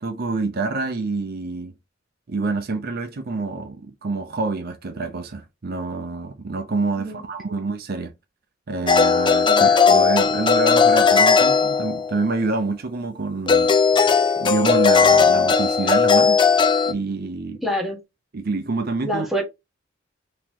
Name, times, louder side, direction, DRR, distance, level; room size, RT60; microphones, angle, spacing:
voice 1, 0.0-1.7 2.3-8.1 8.7-13.7 14.4-16.4 16.9-17.6 18.3-19.3, right 3 dB, 50° right, 0.6 m, -27 dB
voice 2, 6.9-7.6 9.5-9.8 17.6-18.0 19.0-19.4, equal, ahead, 1.1 m, -27 dB
sound 1, 8.9-12.2 13.5-16.9, left 5 dB, 25° left, 0.4 m, -17 dB
3.8 x 3.0 x 2.8 m
head